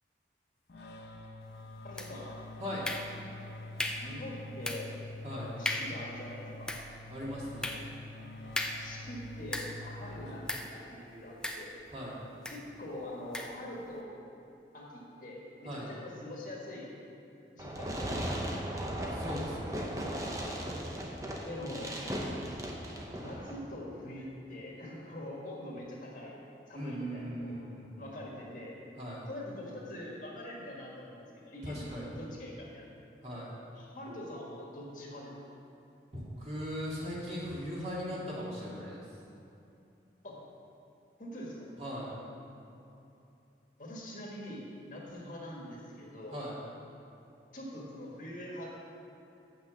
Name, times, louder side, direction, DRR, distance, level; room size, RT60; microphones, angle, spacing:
sound 1, 0.7-11.0, left 1 dB, 70° left, 0.8 m, -46 dB
voice 1, 1.8-2.3 4.0-4.9 5.3-6.8 8.8-11.7 12.5-14.1 14.7-16.9 17.5-18.9 21.4-22.4 23.1-27.7 28.0-28.8 29.2-32.9 33.8-35.3 40.2-40.4 41.2-41.7 43.8-46.4 47.5-48.7, left 1 dB, 50° left, -3 dB, 1.7 m, -44 dB
sound 2, 2.0-2.4 2.8-3.4 3.8-4.2 4.6-5.0 5.3-5.4 5.6-6.1 6.5-9.9 10.5-10.8 11.4-12.0 12.4-12.7 13.3-13.6, left 1 dB, 5° left, 0.4 m, -37 dB
voice 2, 7.1-7.8 11.9-12.2 15.6-15.9 19.1-20.2 26.7-28.1 29.0-29.3 31.6-32.2 33.2-33.6 36.1-39.0 41.8-42.1 46.3-46.6, equal, 35° right, -6 dB, 2.0 m, -39 dB
Fireworks, 17.6-23.6, right 1 dB, 20° right, 0.8 m, -37 dB
7.4 x 6.0 x 7.2 m, 2.8 s
head